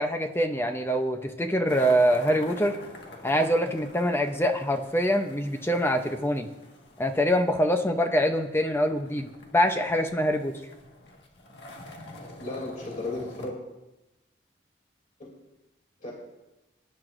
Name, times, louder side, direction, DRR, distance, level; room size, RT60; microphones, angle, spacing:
voice 1, 0.0-2.8 3.2-6.5 7.0-10.6, equal, 15° left, 5 dB, 0.7 m, -24 dB
sound 1, 1.7-13.5, left 1 dB, 65° left, 1.7 m, -46 dB
voice 2, 12.4-13.6 15.2-15.3 16.0-16.1, left 2 dB, 45° left, -2 dB, 2.9 m, -34 dB
22.5 x 10.5 x 2.6 m, 0.99 s
head